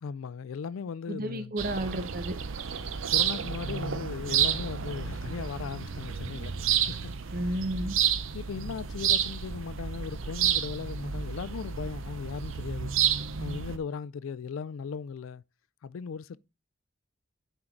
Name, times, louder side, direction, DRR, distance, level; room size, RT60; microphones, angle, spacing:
voice 1, 0.0-1.5 3.1-7.0 8.3-12.9 13.4-15.4 15.8-16.4, left 6 dB, 80° left, 0.4 m, -37 dB
voice 2, 1.1-2.4 7.3-8.0, right 1 dB, 45° right, 1.0 m, -32 dB
sound 1, 1.6-13.8, right 9 dB, 75° right, 0.6 m, -30 dB
9.7 x 4.6 x 3.8 m
head